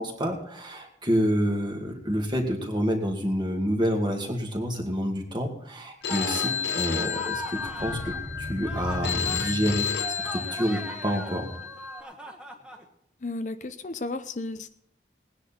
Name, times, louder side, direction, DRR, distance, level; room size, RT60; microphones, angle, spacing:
voice 1, 0.0-11.5, equal, 25° right, 2 dB, 2.3 m, -28 dB
Telephone, 6.0-12.0, left 7 dB, 75° left, 0.8 m, -32 dB
sound 1, 6.1-8.3 8.6-12.8, equal, 5° right, 1.5 m, -39 dB
sound 2, 7.5-10.3, left 1 dB, 60° left, 1.7 m, -36 dB
voice 2, 13.2-14.7, left 2 dB, 45° left, 10 dB, 0.6 m, -33 dB
19.0 x 10.0 x 4.3 m, 0.75 s
head